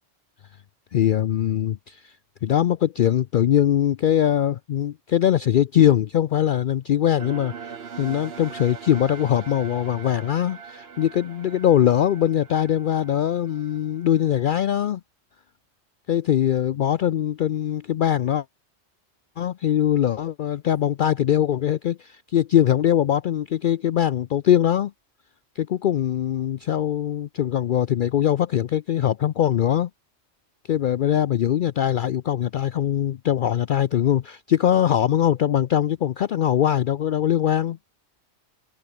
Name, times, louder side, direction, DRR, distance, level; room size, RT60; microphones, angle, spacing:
voice 1, 0.9-2.1 2.4-15.0 16.1-18.4 19.4-24.9 25.6-29.9 30.7-37.8, left 10 dB, 60° left, 0.6 m, -22 dB
sound 1, 7.2-14.4, right 6 dB, 60° right, 1.4 m, -41 dB
omnidirectional pair, 1.2 m